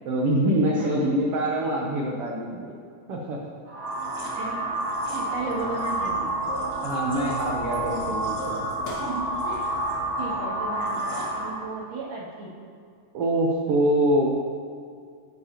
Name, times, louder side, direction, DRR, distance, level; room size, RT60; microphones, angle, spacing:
voice 1, 0.0-2.8 3.1-3.4 6.8-8.7 13.1-14.3, right 1 dB, 85° right, -2 dB, 1.3 m, -24 dB
voice 2, 0.7-1.1 4.3-4.6 5.1-6.4 9.0-9.7 10.2-12.5, right 3 dB, 65° right, -8 dB, 4.1 m, -35 dB
sound 1, 3.7-11.7, right 1 dB, 30° right, 2.2 m, -29 dB
sound 2, 6.5-6.8 7.1-7.4 7.7-8.1 8.4-9.6 9.8-10.0 10.3-10.9 11.1-11.3, left 2 dB, 60° left, 3.2 m, -37 dB
11.5 x 9.5 x 3.0 m, 2.3 s
omnidirectional pair, 3.9 m